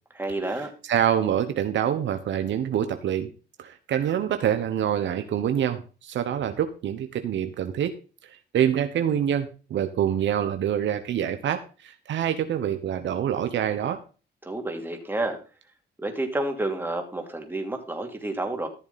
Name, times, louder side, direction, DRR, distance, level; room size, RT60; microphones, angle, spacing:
voice 1, 0.1-0.7 14.4-15.4 16.0-18.7, right 2 dB, 10° right, 3 dB, 2.9 m, -30 dB
voice 2, 0.9-3.3 3.6-7.9 8.3-14.0, right 9 dB, 70° right, 8 dB, 1.1 m, -26 dB
14.0 x 7.0 x 4.2 m, 0.35 s
cardioid pair, 90°, 20 cm